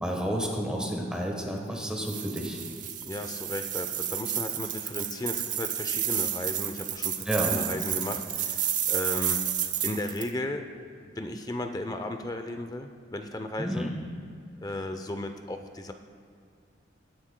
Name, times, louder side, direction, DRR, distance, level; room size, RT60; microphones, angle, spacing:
voice 1, 0.0-2.6 7.2-7.6 13.6-13.9, equal, 5° right, 0 dB, 1.1 m, -30 dB
sound 1, 2.1-10.3, right 10 dB, 40° right, 0.7 m, -31 dB
voice 2, 3.1-9.4 9.8-10.6 11.2-13.9 14.6-15.9, left 1 dB, 20° left, 6 dB, 0.5 m, -35 dB
20.5 x 9.9 x 2.2 m, 2.3 s
head